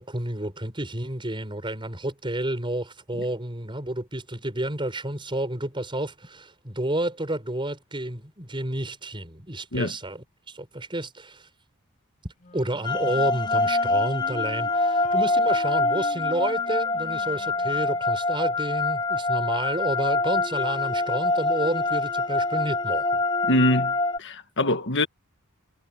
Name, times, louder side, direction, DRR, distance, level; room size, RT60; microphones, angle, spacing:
voice 1, 0.0-11.5 12.2-23.2, right 1 dB, 25° right, 5.8 m, -30 dB
Wind instrument woodwind instrument, 12.4-18.0, left 1 dB, 35° left, 4.1 m, -43 dB
sound 1, 12.8-24.2, left 3 dB, 20° left, 0.9 m, -25 dB
voice 2, 23.4-25.1, left 1 dB, 55° left, 1.8 m, -24 dB
head